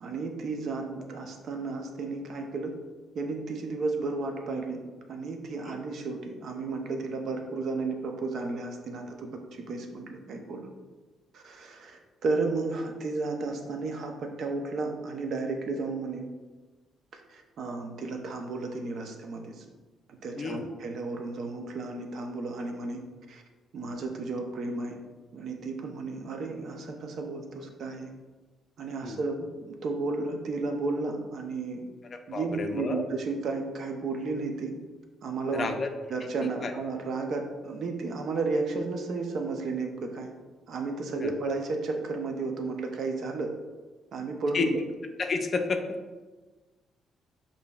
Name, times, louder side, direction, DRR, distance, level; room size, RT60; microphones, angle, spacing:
voice 1, 0.0-2.7 3.1-4.8 5.1-10.7 11.3-16.2 17.1-19.6 20.2-23.0 23.3-23.4 23.7-25.0 25.3-28.1 28.8-31.9 32.3-34.7 35.2-35.7 36.1-40.3 40.7-43.5 44.1-44.8, right 3 dB, 65° right, 3 dB, 0.5 m, -33 dB
voice 2, 20.4-20.7 29.0-29.2 32.3-33.0 35.5-35.9 36.4-36.7 41.2-41.3 44.5-44.7 45.2-45.8, left 4 dB, 45° left, 6 dB, 0.4 m, -30 dB
5.1 x 2.6 x 2.3 m, 1.3 s
cardioid pair, 90°, 0 cm